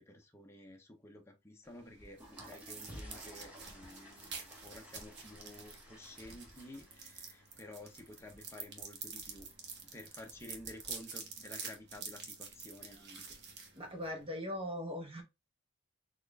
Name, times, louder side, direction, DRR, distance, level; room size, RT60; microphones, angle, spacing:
voice 1, 0.0-9.5 9.9-13.4, left 1 dB, 10° left, 0.7 m, -52 dB
sound 1, 1.7-14.3, right 5 dB, 50° right, 0.9 m, -48 dB
sound 2, 1.9-10.9, equal, 5° right, 1.1 m, -56 dB
voice 2, 13.8-15.2, left 1 dB, 25° right, 1.0 m, -40 dB
4.2 x 2.5 x 3.4 m
head